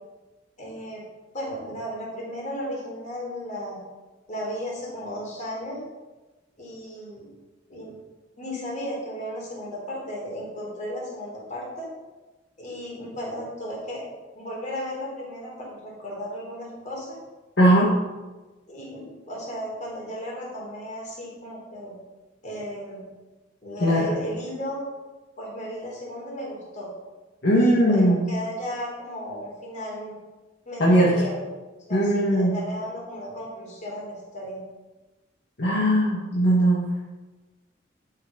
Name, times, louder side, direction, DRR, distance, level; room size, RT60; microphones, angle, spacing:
voice 1, 0.6-1.0 1.3-3.8 4.3-5.8 6.6-7.3 7.7-8.0 8.4-11.9 12.6-14.1 14.3-17.2 18.7-21.9 22.4-23.0 23.6-24.8 25.4-26.9 27.5-30.2 30.7-31.4 31.9-34.6, equal, 45° left, -3 dB, 3.9 m, -35 dB
voice 2, 17.6-17.9 23.8-24.1 27.4-28.2 30.8-31.1 31.9-32.5 35.6-36.8, right 1 dB, 65° left, -5 dB, 2.0 m, -19 dB
11.5 x 6.7 x 5.3 m, 1.2 s
head